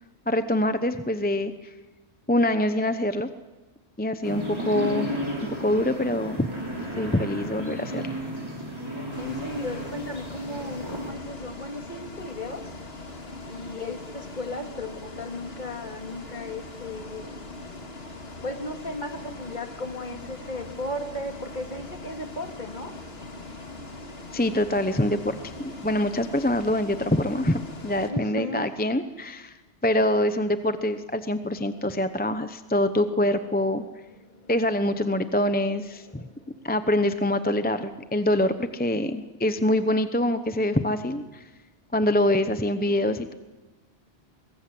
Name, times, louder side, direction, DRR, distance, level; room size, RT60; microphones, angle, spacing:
voice 1, 0.3-1.7 2.3-3.3 4.0-5.2 5.6-6.5 7.0-8.0 24.3-29.5 29.8-33.8 34.5-36.2 36.6-41.4 41.9-43.3, left 1 dB, 10° left, 9 dB, 0.8 m, -25 dB
sound 1, 4.2-11.1, equal, 25° right, 6.2 m, -33 dB
Bus, 9.1-28.1, left 2 dB, 65° left, 2.5 m, -41 dB
voice 2, 9.2-12.7 13.4-17.4 18.4-22.9 28.1-28.7 31.6-32.0 34.2-34.5 35.2-35.3 36.1-36.7 42.8-43.2, left 1 dB, 45° left, 4 dB, 2.5 m, -36 dB
24.5 x 22.5 x 7.8 m, 1.1 s
omnidirectional pair, 1.1 m